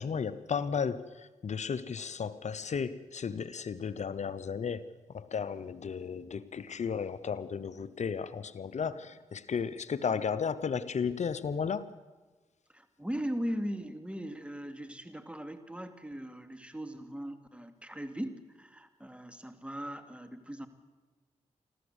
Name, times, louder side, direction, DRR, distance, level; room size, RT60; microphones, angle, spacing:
voice 1, 0.0-11.9, left 6 dB, 60° left, 0.8 m, -34 dB
voice 2, 12.7-20.7, equal, 10° right, 2.5 m, -39 dB
27.5 x 13.0 x 8.2 m
cardioid pair, 45°, 13 cm